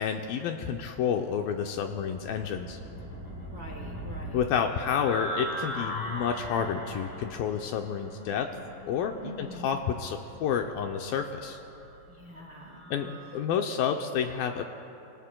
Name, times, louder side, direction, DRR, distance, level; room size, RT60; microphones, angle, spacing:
voice 1, 0.0-2.8 4.3-8.5 8.9-11.6 12.9-14.6, left 7 dB, 85° left, 4 dB, 2.1 m, -30 dB
sound 1, 1.5-13.3, equal, 50° left, 5.6 m, -40 dB
voice 2, 3.3-4.5 9.2-9.7 12.0-13.2, right 1 dB, 75° right, -2 dB, 1.0 m, -45 dB
25.5 x 23.0 x 2.2 m, 2.7 s
omnidirectional pair, 4.8 m